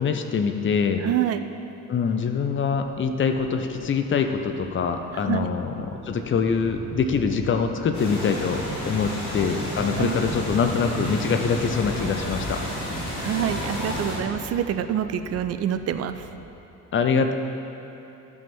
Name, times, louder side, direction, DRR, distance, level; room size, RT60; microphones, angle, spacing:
voice 1, 0.0-1.0 1.9-12.6 16.9-17.3, left 5 dB, 30° left, 6 dB, 0.7 m, -24 dB
voice 2, 1.0-1.4 5.3-5.5 10.0-10.2 13.2-16.3, right 10 dB, 35° right, 10 dB, 0.5 m, -26 dB
sound 1, 2.5-16.4, left 2 dB, 45° left, 1.4 m, -41 dB
sound 2, 7.9-14.2, equal, 85° left, 1.7 m, -31 dB
13.0 x 5.9 x 4.4 m, 2.9 s
figure-of-eight pair, 50°, 42 cm